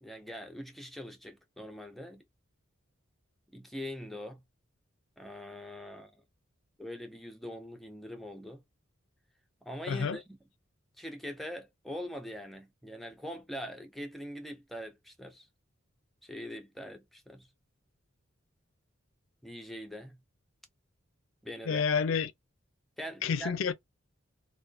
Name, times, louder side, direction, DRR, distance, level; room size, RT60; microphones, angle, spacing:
voice 1, 0.0-2.2 3.5-4.4 5.2-6.2 6.8-8.6 9.6-10.4 11.0-15.5 16.2-17.5 19.4-20.2 21.4-21.9 23.0-23.5, equal, ahead, 0.4 m, -42 dB
voice 2, 9.9-10.2 21.7-22.3 23.2-23.7, left 6 dB, 75° left, 0.4 m, -29 dB
2.4 x 2.2 x 2.3 m
head